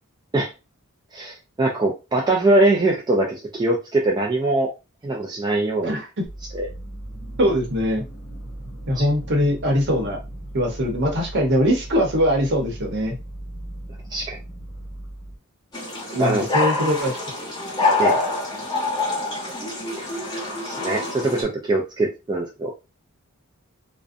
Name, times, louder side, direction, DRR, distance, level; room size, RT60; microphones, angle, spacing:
voice 1, 1.1-4.7 5.0-6.0 6.5-6.7 9.0-9.1 14.1-14.4 16.2-16.5 18.0-18.2 20.0-20.1 20.6-22.7, right 2 dB, 20° right, -1 dB, 0.3 m, -22 dB
voice 2, 5.8-6.2 7.4-8.0 8.9-10.2 10.5-13.1 16.1-17.2, equal, 50° right, 1 dB, 0.8 m, -22 dB
sound 1, 6.2-15.4, right 1 dB, 40° left, 1.1 m, -37 dB
sound 2, 15.7-21.4, left 2 dB, 20° left, 1.1 m, -25 dB
2.5 x 2.1 x 2.5 m, 0.27 s
head